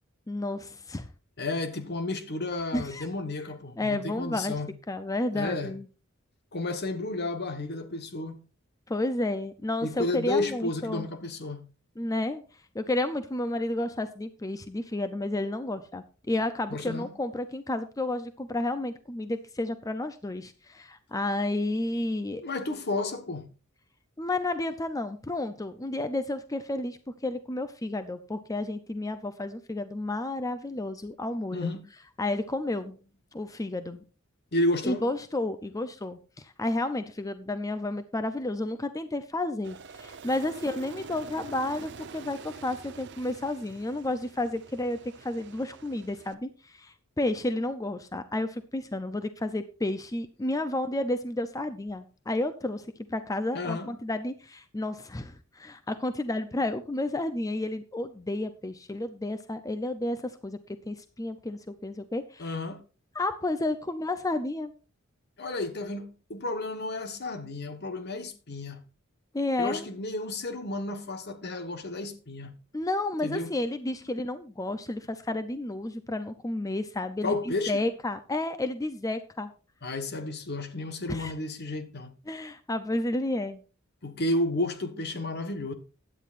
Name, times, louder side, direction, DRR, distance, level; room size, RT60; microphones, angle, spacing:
voice 1, 0.3-1.1 2.7-3.1 3.8-4.5 4.9-5.9 8.9-11.1 12.0-22.4 24.2-31.7 32.2-32.9 33.3-34.0 34.8-60.6 60.9-62.6 63.1-64.7 69.3-69.9 72.7-79.5 81.1-81.3 82.3-83.6, left 2 dB, 15° left, 0.6 m, -31 dB
voice 2, 1.4-4.7 5.3-5.7 6.5-8.4 9.8-11.7 16.7-17.1 22.4-23.5 31.5-31.8 34.5-35.0 53.5-53.9 62.4-62.8 65.4-68.8 69.6-72.5 73.2-73.5 77.2-77.9 79.8-82.1 84.0-85.7, left 2 dB, 55° left, 1.3 m, -32 dB
Aircraft, 39.6-46.3, right 4 dB, 60° right, 0.8 m, -46 dB
16.0 x 10.0 x 2.6 m
head